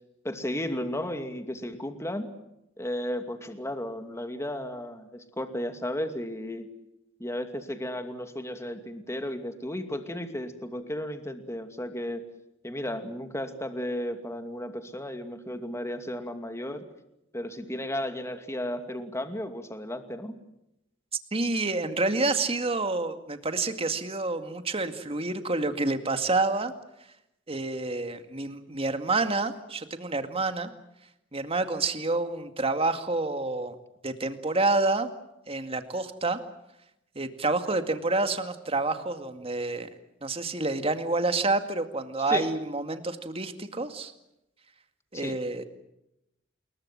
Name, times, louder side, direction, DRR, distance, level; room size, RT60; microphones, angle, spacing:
voice 1, 0.2-2.3 2.8-6.7 7.2-12.2 12.6-16.8 17.3-20.3 42.3-42.5 45.1-45.4, left 1 dB, 15° left, 7 dB, 2.5 m, -34 dB
voice 2, 21.3-26.7 27.5-30.7 31.3-33.7 34.0-35.1 35.5-36.4 37.2-39.9 40.2-44.1 45.1-45.6, right 3 dB, 30° right, 8 dB, 2.2 m, -28 dB
28.5 x 22.0 x 7.6 m, 0.84 s
head